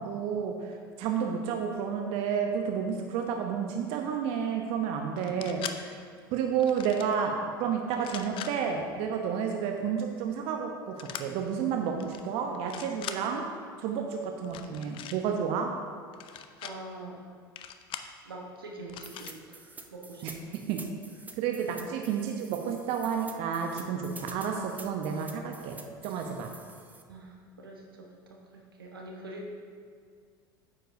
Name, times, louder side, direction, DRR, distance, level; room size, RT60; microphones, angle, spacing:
voice 1, 0.0-6.0 6.3-7.3 7.6-13.5 13.8-15.7 20.2-20.8 21.4-25.8 26.0-26.5, right 7 dB, 55° right, 3 dB, 0.8 m, -31 dB
sound 1, 5.2-5.8 6.6-7.2 7.9-8.5 11.0-11.2 12.0-12.2 12.5-13.2 14.4-15.2 16.1-16.7 17.6-18.1 18.9-19.4, left 10 dB, 45° left, 0.5 m, -41 dB
voice 2, 16.6-17.2 18.2-20.2 21.8-21.9 26.1-26.3 27.1-29.5, right 1 dB, 90° right, 0 dB, 1.1 m, -44 dB
sound 2, 19.0-27.0, right 3 dB, 15° right, 0.7 m, -48 dB
9.4 x 7.8 x 2.7 m, 2.1 s
hypercardioid pair, 75°, 12 cm